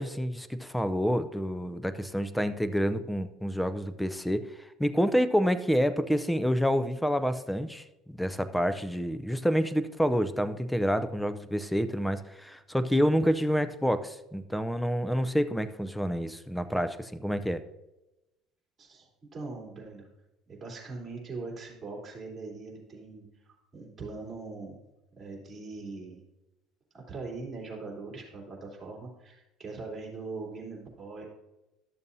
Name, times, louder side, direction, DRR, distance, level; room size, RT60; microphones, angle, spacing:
voice 1, 0.0-4.5 4.8-17.6, equal, 5° left, 12 dB, 0.5 m, -28 dB
voice 2, 18.8-20.1 20.5-23.3 23.7-24.8 25.2-26.2 26.9-31.3, right 3 dB, 25° right, -2 dB, 3.3 m, -41 dB
12.5 x 7.0 x 2.7 m, 0.96 s
cardioid pair, 115°, 0 cm